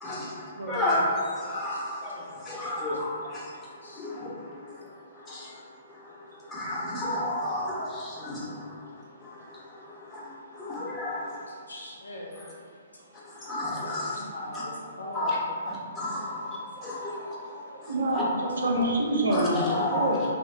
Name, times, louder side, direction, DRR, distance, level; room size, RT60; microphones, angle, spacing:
voice 1, 0.0-5.6 5.9-8.9 9.2-11.5 13.3-14.2 14.5-14.6 15.1-15.4 15.7-18.2 19.3-20.1, left 1 dB, 15° left, -7 dB, 0.7 m, -33 dB
voice 2, 11.5-12.3 13.8-15.3, left 1 dB, 90° left, -3 dB, 0.4 m, -41 dB
voice 3, 17.7-20.2, right 1 dB, 80° right, -2 dB, 0.4 m, -27 dB
2.9 x 2.0 x 2.5 m, 2.2 s
hypercardioid pair, 135°, 0 cm